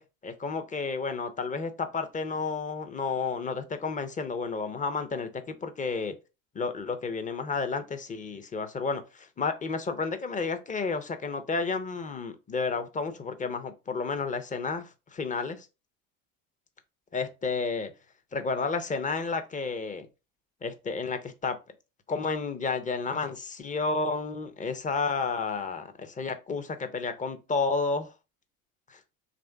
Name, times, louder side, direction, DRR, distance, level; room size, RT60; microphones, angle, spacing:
voice 1, 0.0-6.1 6.5-15.7 17.1-17.9 18.3-20.1 20.6-21.6 22.1-28.1 28.9-29.0, left 4 dB, 20° left, 0.6 m, -31 dB
3.1 x 2.5 x 4.4 m
hypercardioid pair, 90°, 41 cm